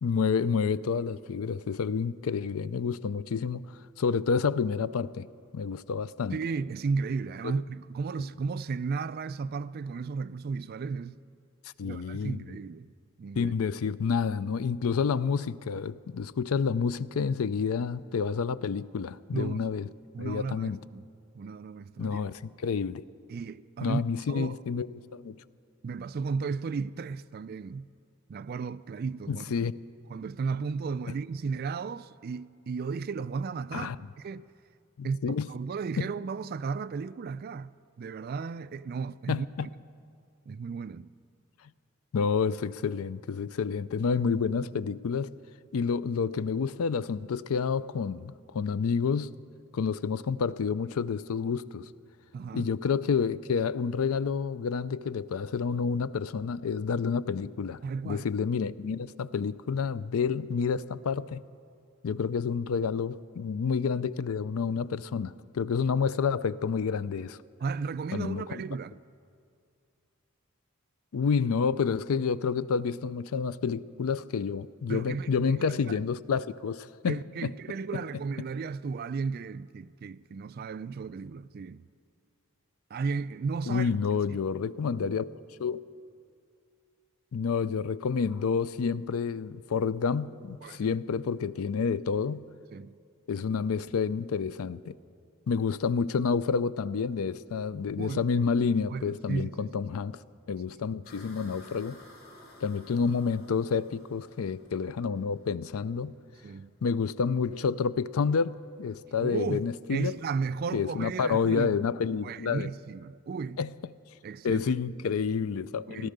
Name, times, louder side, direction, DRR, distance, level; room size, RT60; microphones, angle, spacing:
voice 1, 0.0-3.7 4.0-5.3 5.5-6.4 7.4-7.5 11.8-12.4 13.4-19.9 20.2-20.8 22.0-23.0 23.8-25.4 29.3-29.8 33.7-34.0 35.0-35.5 36.0-36.1 39.3-39.7 42.1-45.3 45.7-49.3 49.7-51.9 52.5-57.8 58.1-61.4 62.0-67.4 68.1-68.6 71.1-77.5 83.7-85.8 87.3-92.4 93.3-94.9 95.5-100.2 100.5-102.0 102.6-106.1 106.8-110.2 110.7-112.7 113.6-113.7 114.4-116.1, left 5 dB, 75° left, 0.4 m, -29 dB
voice 2, 6.3-11.2 11.8-12.9 13.2-13.5 19.3-19.7 20.1-21.1 21.3-22.2 23.3-24.0 24.3-24.6 25.8-27.9 28.3-29.7 30.1-34.5 35.0-37.7 38.0-39.7 40.5-41.1 52.3-52.7 57.8-58.3 67.6-69.0 74.9-76.0 77.1-81.8 82.9-83.9 90.6-91.0 92.7-93.0 98.0-98.2 98.9-99.7 100.7-100.8 106.4-106.7 109.2-109.6 109.9-111.8 112.2-113.6 114.2-114.6 115.9-116.1, right 5 dB, 45° right, 0.3 m, -34 dB
sound 1, 101.0-110.2, left 1 dB, 45° left, 2.5 m, -55 dB
16.5 x 12.5 x 6.6 m
head